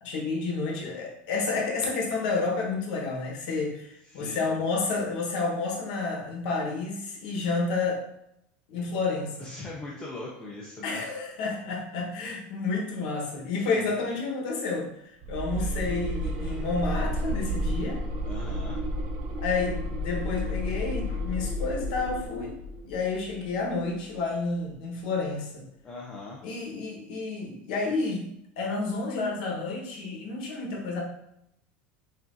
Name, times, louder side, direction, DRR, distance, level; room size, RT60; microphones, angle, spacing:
voice 1, 0.0-8.0 8.7-9.5 10.8-14.9 15.3-18.0 19.4-22.5 22.8-25.6 26.4-28.2 28.6-31.0, left 3 dB, 75° left, 0 dB, 1.1 m, -30 dB
voice 2, 4.1-4.4 9.4-11.0 13.7-13.9 15.6-15.7 18.3-18.9 25.8-26.4, left 2 dB, 15° left, -3 dB, 0.5 m, -40 dB
sound 1, 15.2-24.1, equal, 50° right, 0.5 m, -32 dB
5.4 x 2.5 x 2.6 m, 0.79 s
cardioid pair, 170°, 5 cm